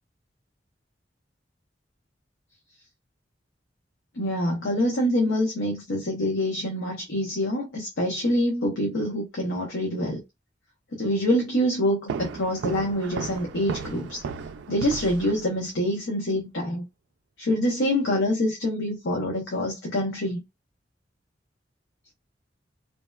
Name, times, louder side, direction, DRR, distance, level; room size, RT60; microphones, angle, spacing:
voice 1, 4.1-10.2 10.9-14.2 14.7-16.8 17.4-20.4, equal, 90° left, 0.8 m, -26 dB
sound 1, 12.1-15.8, right 5 dB, 85° right, 0.3 m, -35 dB
2.7 x 2.1 x 2.2 m
head